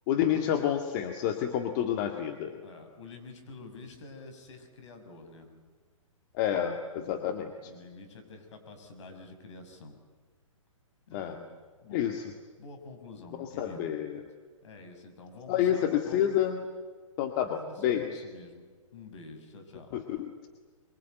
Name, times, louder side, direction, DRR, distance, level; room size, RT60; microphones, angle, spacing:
voice 1, 0.1-2.6 6.3-7.7 11.1-11.4 11.9-12.3 13.4-14.2 15.5-16.6 17.2-18.2 19.9-20.5, left 10 dB, 35° left, 5 dB, 2.0 m, -29 dB
voice 2, 2.6-5.5 7.0-7.3 7.6-10.0 11.1-11.5 11.8-12.1 12.6-13.9 14.6-16.3 17.4-18.7 18.9-19.9, left 3 dB, 60° left, 5 dB, 6.2 m, -48 dB
24.0 x 23.5 x 9.2 m, 1.5 s
hypercardioid pair, 130°, 17 cm